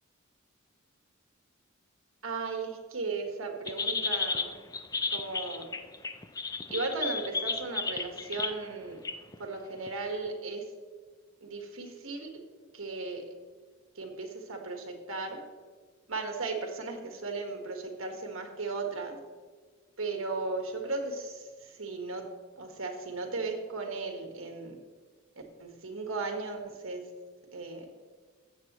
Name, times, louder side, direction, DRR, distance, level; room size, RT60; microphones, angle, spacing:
voice 1, 2.2-4.6 5.1-5.7 6.7-9.0 9.4-10.7 11.4-12.4 12.7-13.2 13.9-15.4 16.1-19.2 20.0-22.3 22.5-24.8 25.6-27.1 27.5-27.8, right 3 dB, 85° right, 3 dB, 1.5 m, -36 dB
sound 1, 3.7-8.5 9.1-9.4 9.9-10.0, left 4 dB, 15° left, 0.4 m, -33 dB
14.5 x 7.5 x 3.1 m, 1.5 s
head